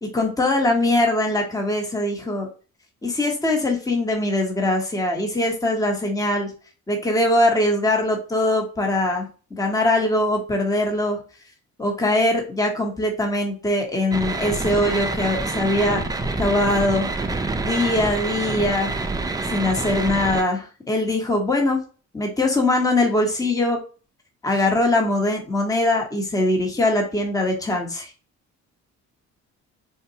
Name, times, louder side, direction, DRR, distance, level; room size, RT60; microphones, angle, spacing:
voice 1, 0.0-2.5 3.0-6.5 6.9-11.2 11.8-17.1 17.6-19.0 19.5-21.8 22.1-23.8 24.4-28.1, left 1 dB, 10° left, 1 dB, 0.9 m, -22 dB
sound 1, 14.1-20.4, right 3 dB, 15° right, 0.3 m, -27 dB
3.7 x 2.2 x 2.7 m, 0.36 s
cardioid pair, 90°, 30 cm